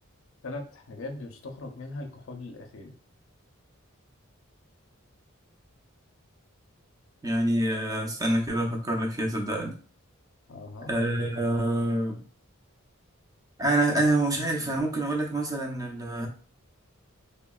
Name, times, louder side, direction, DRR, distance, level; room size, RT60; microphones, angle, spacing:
voice 1, 0.4-2.9 10.5-11.0, left 2 dB, 60° left, 5 dB, 0.5 m, -40 dB
voice 2, 7.2-9.7 10.9-12.2 13.6-16.3, right 1 dB, 15° right, 1 dB, 0.5 m, -26 dB
3.6 x 2.0 x 2.2 m, 0.42 s
head